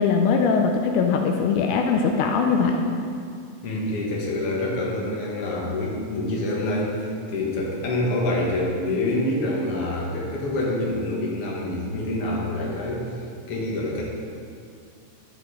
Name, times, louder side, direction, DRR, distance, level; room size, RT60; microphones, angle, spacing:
voice 1, 0.0-2.8, left 5 dB, 85° left, 3 dB, 2.0 m, -21 dB
voice 2, 3.6-13.2 13.5-14.1, left 1 dB, 55° left, -3 dB, 2.2 m, -26 dB
12.0 x 6.1 x 4.8 m, 2.3 s
omnidirectional pair, 3.5 m